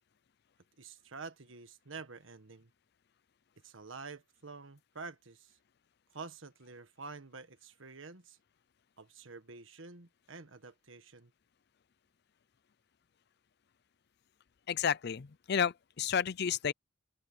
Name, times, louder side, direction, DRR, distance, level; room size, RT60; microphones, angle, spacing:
voice 1, 0.8-2.7 3.6-5.6 6.1-8.4 9.0-11.3, right 4 dB, 90° right, 1.5 m, -48 dB
voice 2, 14.7-16.7, left 7 dB, 55° left, 0.5 m, -31 dB
open air
head